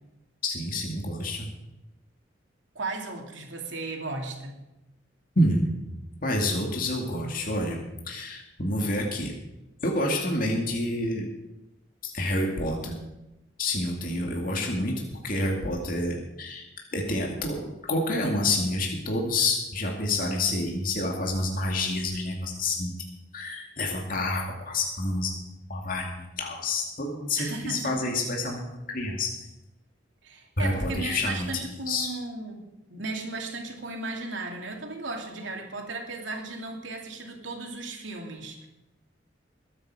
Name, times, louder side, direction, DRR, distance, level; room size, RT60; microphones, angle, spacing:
voice 1, 0.4-1.5 5.4-5.8 6.2-7.8 8.1-9.3 9.8-11.2 12.0-13.0 13.6-16.6 16.9-22.9 23.3-25.4 25.7-29.5 30.6-32.1, left 1 dB, 45° left, 0 dB, 2.4 m, -28 dB
voice 2, 2.7-4.6 27.4-28.1 30.2-32.6 32.9-38.7, right 3 dB, 80° right, 2 dB, 2.7 m, -36 dB
21.0 x 9.0 x 4.9 m, 0.95 s
head